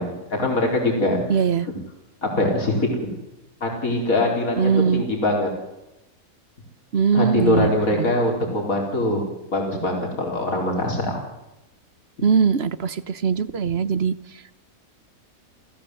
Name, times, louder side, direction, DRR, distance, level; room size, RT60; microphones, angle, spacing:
voice 1, 0.0-1.2 1.7-1.8 2.2-3.1 3.6-5.5 7.1-11.2, left 1 dB, 65° left, 1 dB, 4.8 m, -23 dB
voice 2, 1.3-1.7 4.6-5.0 6.9-7.7 8.0-8.1 12.2-14.1, right 6 dB, 50° right, 16 dB, 1.1 m, -21 dB
28.0 x 16.0 x 7.9 m, 0.95 s
omnidirectional pair, 1.6 m